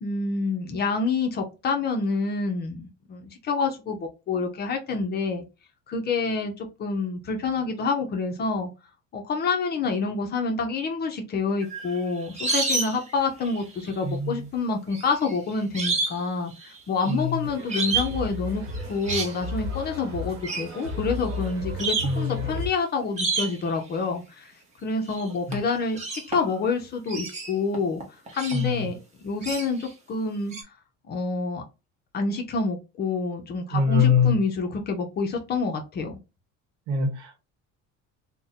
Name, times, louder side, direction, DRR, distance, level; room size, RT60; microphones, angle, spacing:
voice 1, 0.0-5.5 5.9-8.7 9.1-18.6 18.9-24.5 24.8-28.0 28.3-29.0 29.2-30.5 31.1-31.6 32.1-36.2, left 4 dB, 30° left, 3 dB, 0.5 m, -27 dB
sound 1, 11.6-13.1 13.4-14.0 14.9-16.2 16.5-17.1 17.7-18.2 18.7-19.4 20.4-20.7 21.3-21.4 21.8-22.2 23.2-23.7 25.1-25.3 25.5-26.6 27.1-28.7 29.4-29.9 30.5-30.6, right 3 dB, 20° right, 0.7 m, -29 dB
voice 2, 14.0-14.4 17.1-17.5 22.0-22.6 25.5-25.6 28.5-28.9 33.7-34.3 36.9-37.4, left 6 dB, 60° right, 5 dB, 1.0 m, -24 dB
sound 2, 17.4-22.7, left 2 dB, 45° right, 1.1 m, -34 dB
2.5 x 2.1 x 3.9 m, 0.28 s
cardioid pair, 160°, 32 cm